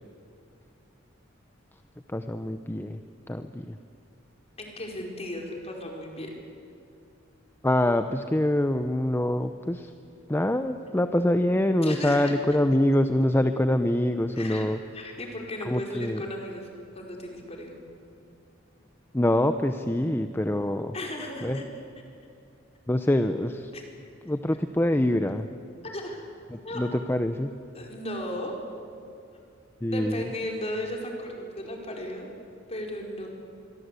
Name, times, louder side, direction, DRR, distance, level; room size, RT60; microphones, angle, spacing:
voice 1, 2.1-3.0 3.3-3.8 7.6-9.9 10.3-14.8 15.7-16.2 19.1-20.9 21.4-21.6 22.9-23.7 24.3-25.5 26.5-27.5 29.8-30.3, left 1 dB, 10° left, 9 dB, 0.7 m, -25 dB
voice 2, 4.6-6.3 11.8-12.3 14.4-14.7 14.9-17.8 20.9-21.6 23.7-23.8 25.8-26.2 26.6-26.8 27.7-28.6 29.9-32.3 32.7-33.3, left 1 dB, 30° left, 1 dB, 4.6 m, -35 dB
26.0 x 23.0 x 8.3 m, 2.5 s
head